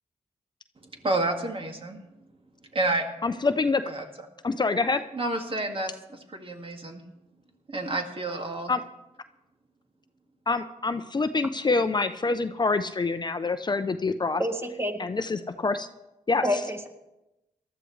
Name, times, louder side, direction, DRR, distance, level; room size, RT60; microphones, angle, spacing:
voice 1, 0.8-2.0 2.7-3.1 3.8-4.0 5.1-7.0 7.7-8.7, right 2 dB, 40° right, 3 dB, 2.1 m, -30 dB
voice 2, 3.2-3.8 4.4-5.0 8.7-8.8 10.5-14.4 15.0-15.9 16.3-16.4, left 3 dB, 35° left, 10 dB, 0.6 m, -26 dB
voice 3, 14.4-15.0 16.4-16.9, equal, 20° right, 5 dB, 1.9 m, -28 dB
19.0 x 13.0 x 3.2 m, 0.95 s
cardioid pair, 60°, 13 cm